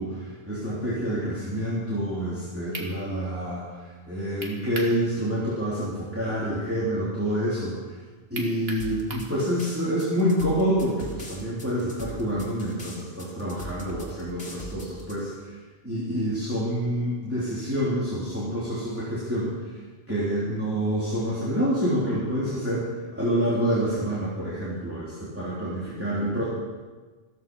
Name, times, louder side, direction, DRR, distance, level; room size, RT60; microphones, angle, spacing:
voice 1, 0.0-8.0 8.3-15.5 15.8-19.5 20.1-22.9 23.1-26.5, equal, 15° right, -9 dB, 3.4 m, -27 dB
sound 1, 2.3-2.4 2.7-2.9 4.4-5.0 5.4-5.5 8.3-9.3, right 2 dB, 70° right, 2.1 m, -36 dB
sound 2, 8.8-15.1, equal, 70° left, 2.8 m, -40 dB
14.5 x 14.0 x 5.4 m, 1.3 s
omnidirectional pair, 1.1 m